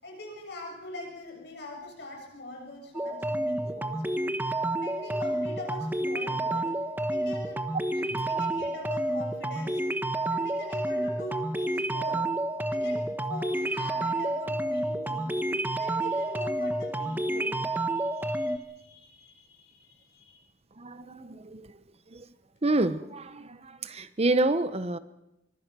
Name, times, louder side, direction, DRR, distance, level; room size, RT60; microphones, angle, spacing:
voice 1, 0.0-4.0 4.7-6.7 7.1-7.6 7.9-9.8 10.3-12.3 12.7-20.5, left 1 dB, 65° left, 1 dB, 7.3 m, -43 dB
sound 1, 2.9-18.6, right 1 dB, 10° right, 1.2 m, -30 dB
voice 2, 20.8-21.7 22.1-22.2 22.6-25.0, right 2 dB, 35° right, 13 dB, 0.9 m, -28 dB
24.0 x 23.5 x 6.2 m, 0.91 s
head